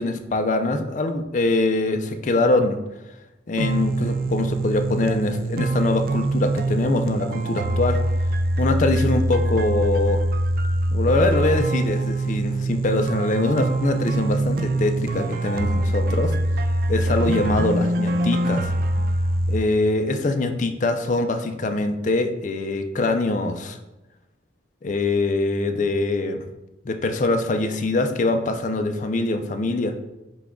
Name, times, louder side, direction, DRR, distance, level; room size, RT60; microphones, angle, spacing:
voice 1, 0.0-2.8 3.5-8.0 8.6-10.2 10.9-16.3 16.9-18.7 19.5-23.8 24.8-26.4 26.8-30.0, left 2 dB, 40° left, 7 dB, 0.4 m, -23 dB
sound 1, 3.6-19.6, right 1 dB, 50° right, 0.3 m, -24 dB
5.9 x 2.3 x 3.6 m, 0.97 s
head